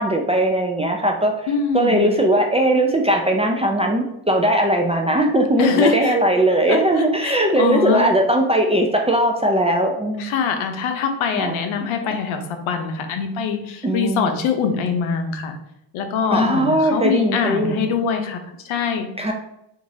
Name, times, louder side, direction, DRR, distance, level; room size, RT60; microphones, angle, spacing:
voice 1, 0.0-1.4 1.7-10.3 11.4-11.6 13.8-14.3 16.3-17.9 19.2-19.3, right 1 dB, 15° right, 1 dB, 0.4 m, -19 dB
voice 2, 1.5-2.0 5.6-6.2 6.7-8.1 10.2-15.6 15.9-19.1, left 6 dB, 75° left, 6 dB, 0.8 m, -23 dB
4.6 x 2.6 x 2.7 m, 0.81 s
cardioid pair, 80°, 50 cm